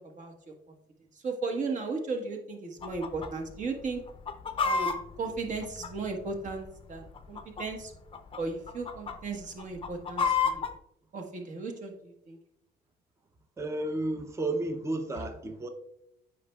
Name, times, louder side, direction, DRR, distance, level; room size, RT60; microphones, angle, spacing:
voice 1, 1.2-4.0 4.6-7.9 8.4-10.6 11.1-12.4, right 3 dB, 45° right, 3 dB, 1.3 m, -35 dB
Chicken rooster, 2.8-3.3 3.6-3.7 4.1-6.4 7.1-7.8 8.1-8.4 8.7-9.1 9.6-10.7, left 5 dB, 30° left, 0.5 m, -30 dB
voice 2, 13.6-15.7, right 2 dB, 15° right, 6 dB, 0.6 m, -32 dB
8.4 x 5.4 x 2.3 m, 0.79 s
cardioid pair, 110°, 17 cm